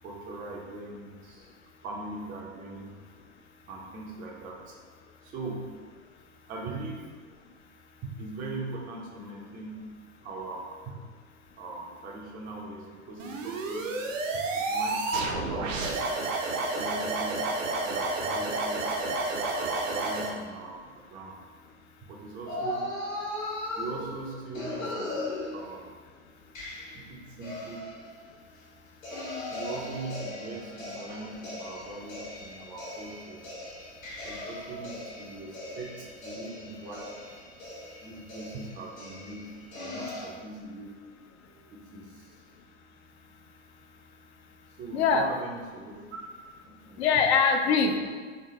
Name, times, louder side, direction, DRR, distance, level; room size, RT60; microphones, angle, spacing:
voice 1, 0.0-1.5 1.8-2.9 3.7-4.8 5.2-5.7 6.5-7.1 8.0-9.9 10.2-10.7 11.6-14.0 14.5-16.0 16.5-18.9 19.5-21.4 22.0-22.9 23.8-25.2 25.5-25.9 26.9-27.9 29.5-33.4 34.2-37.2 38.0-39.5 39.8-41.0 41.5-42.3 44.6-46.2 46.6-47.0, right 2 dB, 20° right, -2 dB, 0.4 m, -41 dB
sound 1, 13.2-20.4, right 2 dB, 70° right, 0.6 m, -30 dB
sound 2, 22.4-26.0 26.5-28.6 29.0-40.2, left 1 dB, 70° left, 1.4 m, -38 dB
voice 2, 44.4-45.3 47.0-48.0, left 5 dB, 55° left, 5 dB, 0.5 m, -25 dB
3.5 x 3.1 x 2.6 m, 1.5 s
figure-of-eight pair, 90°, 40 cm